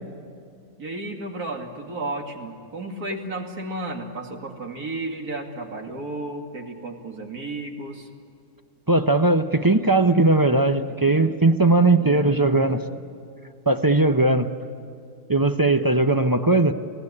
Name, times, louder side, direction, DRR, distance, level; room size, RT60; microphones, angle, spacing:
voice 1, 0.8-8.1, right 2 dB, 70° right, 2 dB, 2.9 m, -33 dB
voice 2, 8.9-12.8 13.7-14.5 15.3-16.7, right 2 dB, 30° right, 8 dB, 0.4 m, -19 dB
29.0 x 18.0 x 9.8 m, 2.5 s
omnidirectional pair, 1.6 m